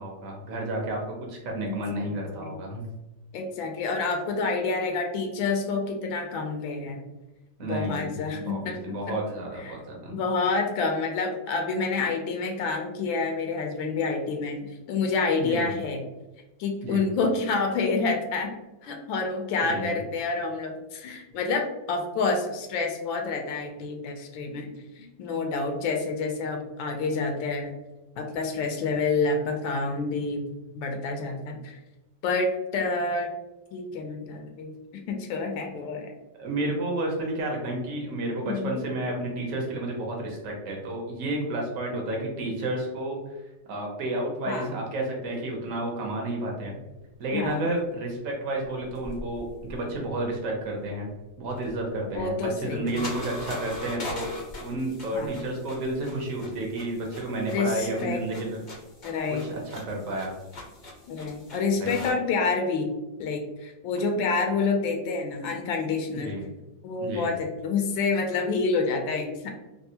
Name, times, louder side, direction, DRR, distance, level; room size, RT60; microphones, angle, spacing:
voice 1, 0.0-2.8 7.6-8.2 8.5-10.2 15.4-15.7 16.8-17.1 19.6-20.0 36.4-43.2 43.7-46.8 47.2-51.1 51.4-54.3 54.6-58.6 59.4-60.3 61.8-61.9 66.2-66.5 67.0-67.4, right 1 dB, 60° right, 0 dB, 0.9 m, -31 dB
voice 2, 1.6-2.1 2.4-2.6 3.3-7.0 7.7-9.2 9.6-9.8 10.1-16.0 16.6-18.5 18.8-24.7 25.0-27.7 28.2-30.4 30.7-31.8 32.2-33.3 33.7-36.1 38.4-38.7 44.5-44.7 47.3-47.6 52.1-53.1 55.1-55.4 57.5-58.2 59.0-59.4 61.1-62.9 63.2-66.3 66.8-69.5, left 4 dB, 85° left, 3 dB, 1.3 m, -28 dB
sound 1, 48.8-50.2 51.4-62.1, left 2 dB, 60° left, 0.4 m, -42 dB
3.5 x 2.3 x 2.7 m, 1.0 s
omnidirectional pair, 2.0 m